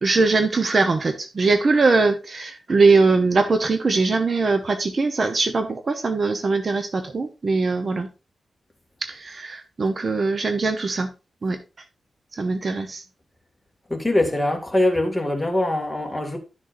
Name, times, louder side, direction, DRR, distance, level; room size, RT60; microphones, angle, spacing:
voice 1, 0.0-8.1 9.0-11.1 11.4-11.6 12.3-13.0, right 3 dB, 45° right, 0.9 m, -21 dB
voice 2, 13.9-16.4, left 1 dB, 10° left, 2.3 m, -22 dB
12.0 x 6.4 x 2.6 m
wide cardioid pair, 95°, 0 cm